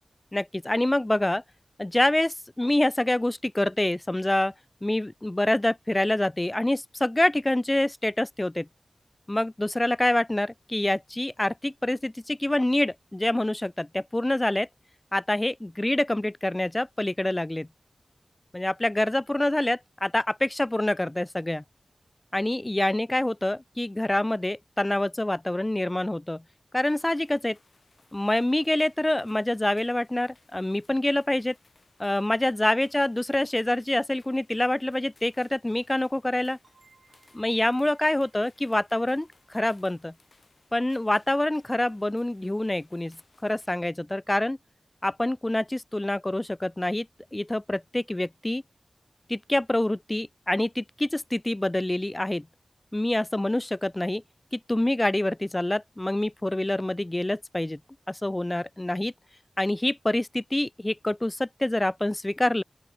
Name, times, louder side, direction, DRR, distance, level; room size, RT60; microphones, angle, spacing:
voice 1, 0.3-1.4 1.8-4.5 4.8-8.7 9.3-14.7 15.1-17.7 18.5-21.6 22.3-26.4 26.7-27.6 28.1-31.6 32.0-36.6 37.3-40.1 40.7-43.2 43.4-44.6 45.0-47.1 47.3-48.6 49.3-52.5 52.9-54.2 54.5-57.8 58.1-59.1 59.6-62.6, left 1 dB, 20° left, 0.4 m, -26 dB
sound 1, 26.7-43.7, left 3 dB, 55° left, 4.0 m, -63 dB
sound 2, 36.6-42.1, right 4 dB, 80° right, 4.5 m, -66 dB
open air
wide cardioid pair, 65°, 0 cm